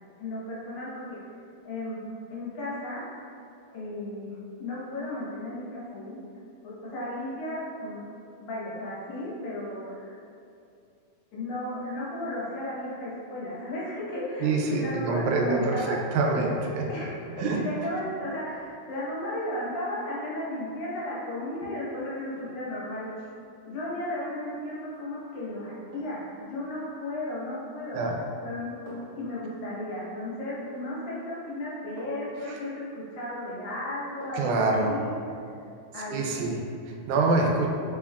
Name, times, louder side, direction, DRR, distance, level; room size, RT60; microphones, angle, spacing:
voice 1, 0.2-1.2 1.6-2.0 2.3-3.0 3.7-6.2 6.6-8.0 8.3-10.2 11.3-16.0 16.9-23.2 23.6-28.0 28.4-28.8 29.2-35.1 35.9-36.4, left 1 dB, 75° left, -7 dB, 2.3 m, -34 dB
voice 2, 14.4-17.1 17.4-17.6 27.9-28.2 32.4-32.6 34.3-35.0 36.1-37.7, right 3 dB, 85° right, 0 dB, 1.9 m, -26 dB
sound 1, 20.8-21.1 22.4-22.8 24.9-25.1 25.9-26.4 27.7-28.1 28.9-29.3 31.0-31.1 32.0-32.4 34.2-34.7 35.0-35.1, right 1 dB, 65° right, 1.9 m, -48 dB
4.9 x 2.3 x 3.5 m, 2.5 s
omnidirectional pair, 3.4 m